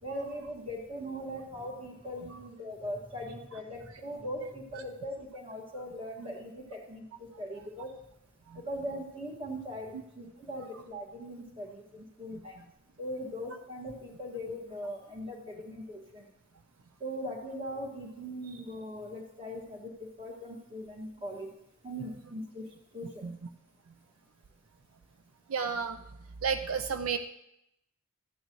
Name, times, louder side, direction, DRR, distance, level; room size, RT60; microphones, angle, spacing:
voice 1, 0.0-7.0 7.4-7.9 8.7-12.6 13.0-16.2 17.0-19.9 20.2-21.5 21.8-22.6 22.9-23.3, equal, 25° right, -1 dB, 2.0 m, -40 dB
voice 2, 25.5-26.0 26.4-27.2, right 6 dB, 75° right, 8 dB, 0.5 m, -32 dB
14.5 x 9.3 x 3.1 m, 0.81 s
head